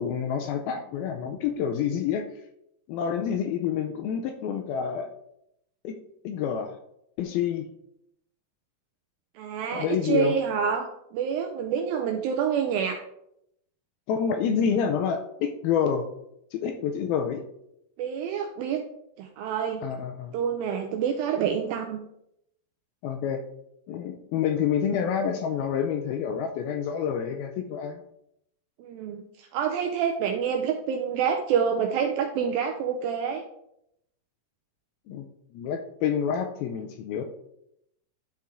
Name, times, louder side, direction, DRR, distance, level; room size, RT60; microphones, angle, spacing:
voice 1, 0.0-2.3 2.9-5.1 5.8-6.0 6.2-6.8 7.2-7.7 9.7-10.3 14.1-16.1 16.5-17.4 19.8-20.4 23.0-23.4 23.9-28.0 35.1-35.3 35.5-37.2, left 7 dB, 85° left, 5 dB, 2.2 m, -28 dB
voice 2, 9.4-13.0 18.0-18.8 19.2-19.9 20.3-22.0 28.8-33.4, right 7 dB, 85° right, 4 dB, 2.1 m, -27 dB
11.5 x 4.4 x 3.6 m, 0.78 s
omnidirectional pair, 4.8 m